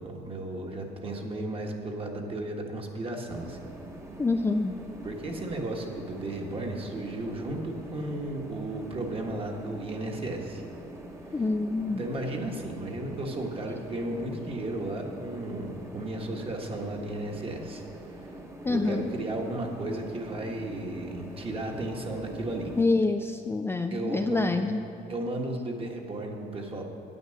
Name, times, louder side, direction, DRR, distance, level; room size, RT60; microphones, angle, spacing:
voice 1, 0.0-3.6 5.0-10.6 11.9-17.8 18.2-18.3 18.7-22.7 23.9-24.5 25.1-26.8, right 1 dB, 35° right, 1 dB, 1.5 m, -34 dB
sound 1, 3.3-22.8, right 1 dB, 15° right, 1.1 m, -44 dB
voice 2, 4.2-4.8 11.3-12.0 18.6-19.1 22.8-24.8, left 3 dB, 15° left, 5 dB, 0.4 m, -26 dB
9.5 x 8.8 x 6.5 m, 2.7 s
cardioid pair, 110°, 17 cm